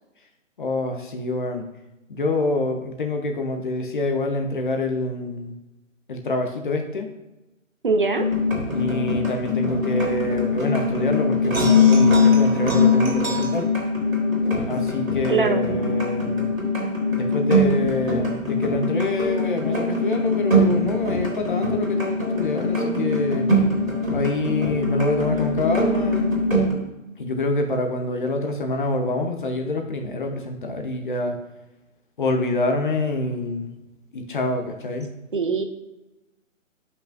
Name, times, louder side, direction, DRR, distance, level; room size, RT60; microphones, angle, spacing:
voice 1, 0.6-1.7 2.1-5.5 6.1-7.1 8.7-13.7 14.7-16.5 17.1-23.6 24.1-26.3 27.2-31.4 32.2-33.7 34.1-35.1, left 2 dB, 40° left, 5 dB, 0.9 m, -26 dB
voice 2, 7.8-8.3 15.3-15.6 35.3-35.6, right 4 dB, 40° right, 6 dB, 0.5 m, -21 dB
sound 1, 8.1-26.7, left 2 dB, 85° right, 2.3 m, -22 dB
10.0 x 5.5 x 2.6 m, 1.0 s
figure-of-eight pair, 145°, 40 cm